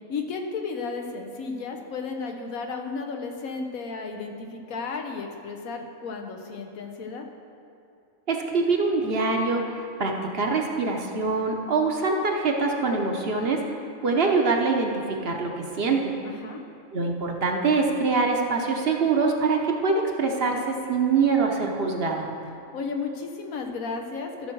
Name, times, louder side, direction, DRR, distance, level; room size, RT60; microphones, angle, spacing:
voice 1, 0.1-7.3 16.2-16.6 22.7-24.5, left 4 dB, 85° left, 3 dB, 1.4 m, -33 dB
voice 2, 8.3-16.1 16.9-22.3, right 4 dB, 50° right, 2 dB, 1.0 m, -24 dB
14.0 x 6.5 x 4.6 m, 2.7 s
omnidirectional pair, 1.4 m